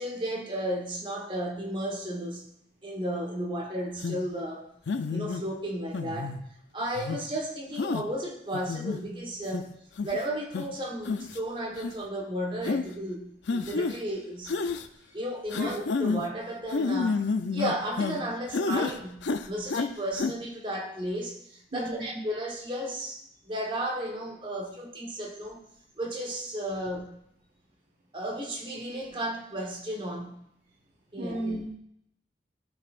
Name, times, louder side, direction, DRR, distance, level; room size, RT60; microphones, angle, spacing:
voice 1, 0.0-2.5 2.8-4.7 5.1-6.4 6.7-14.5 15.1-25.6 26.0-27.1 28.1-30.4 31.1-31.4, right 1 dB, 30° right, 0 dB, 1.3 m, -34 dB
sound 1, 4.0-4.2 4.9-5.4 5.9-6.4 7.0-7.2 7.8-8.0 8.5-9.0 9.5-9.6 10.0-10.2 10.5-10.6 11.0-11.4 11.8-11.9 12.6-12.8 13.5-14.0 14.5-14.9 15.5-16.2 16.7-18.2 18.5-19.0 19.2-19.9 20.2-20.3, left 4 dB, 90° left, 0.5 m, -29 dB
voice 2, 21.7-22.2 31.2-31.7, right 1 dB, 55° right, -5 dB, 1.5 m, -34 dB
12.0 x 5.5 x 2.5 m, 0.73 s
head